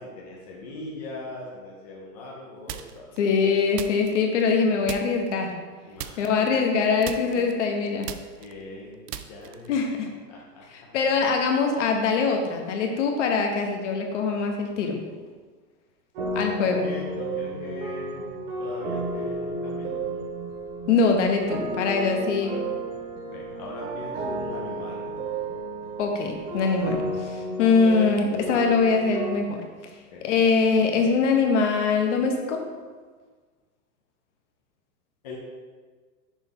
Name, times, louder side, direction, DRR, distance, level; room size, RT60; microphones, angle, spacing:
voice 1, 0.0-3.2 5.8-7.5 8.4-9.0 9.3-9.7 10.3-10.9 16.6-20.1 22.0-22.1 22.4-22.6 22.9-23.0 23.3-25.2 30.1-30.3 35.2-35.4, left 2 dB, 25° left, -3 dB, 0.5 m, -40 dB
sound 1, 2.7-3.2 3.7-4.6 4.9-5.4 6.0-6.8 7.0-9.8, right 10 dB, 75° right, 0.6 m, -38 dB
voice 2, 3.2-5.5 6.2-8.1 9.7-10.1 10.9-15.0 16.3-16.9 20.9-22.6 26.0-29.6 30.2-32.6, left 4 dB, 45° left, 3 dB, 1.0 m, -23 dB
sound 2, 16.1-29.4, right 2 dB, 35° right, 1.3 m, -32 dB
6.3 x 3.3 x 5.4 m, 1.5 s
hypercardioid pair, 155°, 49 cm